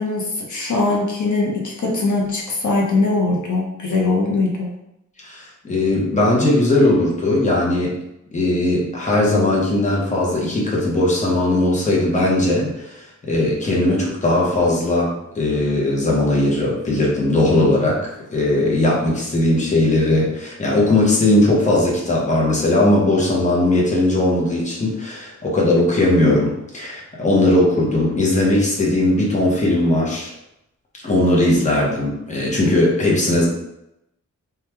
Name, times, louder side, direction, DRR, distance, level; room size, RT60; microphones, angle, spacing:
voice 1, 0.0-4.7, left 3 dB, 75° left, -2 dB, 0.7 m, -21 dB
voice 2, 5.2-8.0 8.3-30.3 31.0-33.5, left 1 dB, 25° left, -4 dB, 0.8 m, -18 dB
3.0 x 2.3 x 3.3 m, 0.83 s
wide cardioid pair, 120°, 30 cm